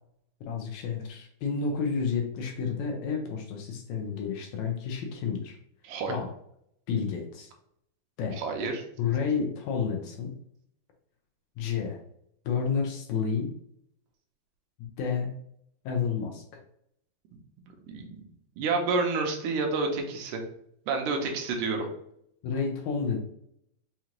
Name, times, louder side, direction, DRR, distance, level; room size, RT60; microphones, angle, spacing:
voice 1, 0.5-5.6 6.1-6.3 6.9-7.5 8.2-8.4 9.0-10.3 11.6-12.0 12.5-13.5 15.0-15.3 15.9-16.6 22.4-23.2, left 6 dB, 75° left, 2 dB, 1.9 m, -30 dB
voice 2, 5.8-6.2 8.4-8.8 17.9-18.2 18.6-20.4 20.9-21.9, right 3 dB, 85° right, 3 dB, 2.1 m, -29 dB
5.7 x 3.0 x 2.5 m, 0.71 s
omnidirectional pair, 3.6 m